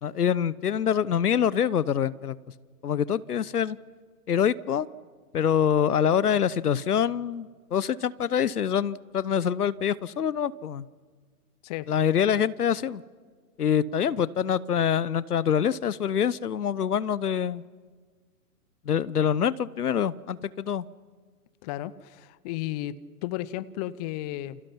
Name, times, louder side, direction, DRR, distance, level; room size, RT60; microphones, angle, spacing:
voice 1, 0.0-2.4 2.8-3.8 4.3-4.9 5.3-10.8 11.9-13.0 13.6-17.6 18.9-20.8, left 8 dB, 75° left, 20 dB, 1.0 m, -25 dB
voice 2, 21.6-22.9 23.2-24.6, left 15 dB, 25° left, 18 dB, 0.7 m, -33 dB
29.0 x 29.0 x 5.9 m, 1.5 s
figure-of-eight pair, 120°, 46 cm